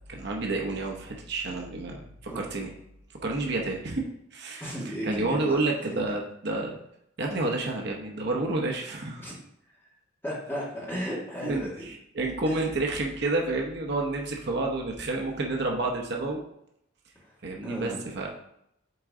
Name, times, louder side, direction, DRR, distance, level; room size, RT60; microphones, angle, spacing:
voice 1, 0.1-2.7 3.1-4.0 4.3-4.7 5.0-6.8 7.2-9.3 11.4-16.4 17.4-18.3, right 2 dB, 55° right, 0 dB, 0.8 m, -30 dB
voice 2, 4.6-6.1 9.2-9.3 9.8-9.9 10.2-11.9 12.4-12.7 17.2-17.4 17.6-18.0, equal, 10° left, -6 dB, 2.0 m, -35 dB
8.1 x 3.9 x 3.7 m, 0.77 s
head